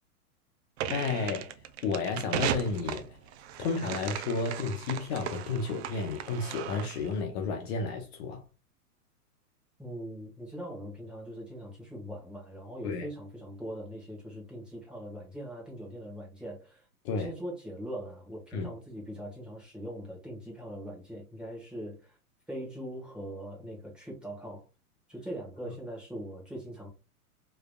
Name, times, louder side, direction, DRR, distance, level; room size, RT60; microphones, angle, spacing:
sound 1, 0.8-7.1, right 10 dB, 45° right, 0.5 m, -37 dB
voice 1, 0.9-1.5 1.8-3.2 3.6-8.4 12.8-13.1 17.0-17.3 18.5-18.7, left 4 dB, 45° left, 0.8 m, -32 dB
voice 2, 9.8-16.8 17.1-22.2 22.5-24.6 25.1-26.9, equal, ahead, 1.6 m, -41 dB
4.7 x 3.4 x 2.2 m
hypercardioid pair, 125°, 45 cm